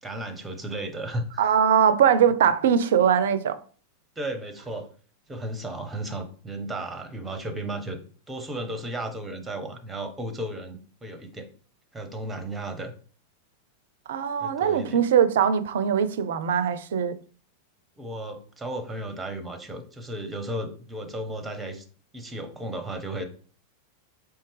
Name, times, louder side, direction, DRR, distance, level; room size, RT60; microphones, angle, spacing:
voice 1, 0.0-1.6 4.2-4.9 5.3-8.0 8.3-11.5 11.9-12.9 14.4-15.0 18.0-21.8 22.1-23.3, right 1 dB, 10° right, 0.8 m, -34 dB
voice 2, 1.4-3.6 14.1-17.2, right 8 dB, 60° right, 0.4 m, -21 dB
4.3 x 3.3 x 3.2 m
figure-of-eight pair, 90°, 0 cm